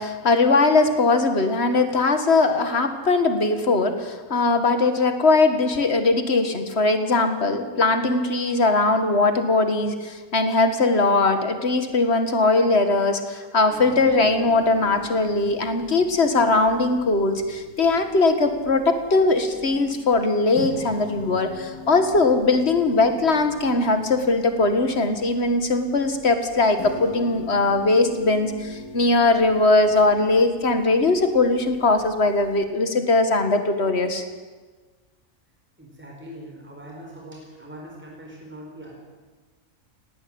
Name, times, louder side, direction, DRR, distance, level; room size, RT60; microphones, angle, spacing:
voice 1, 0.0-34.2, left 3 dB, 45° left, 7 dB, 2.2 m, -20 dB
sound 1, 13.7-32.6, left 1 dB, 90° left, 3.4 m, -42 dB
voice 2, 35.8-39.0, equal, 5° right, -2 dB, 4.6 m, -41 dB
19.0 x 18.0 x 8.9 m, 1.3 s
omnidirectional pair, 1.6 m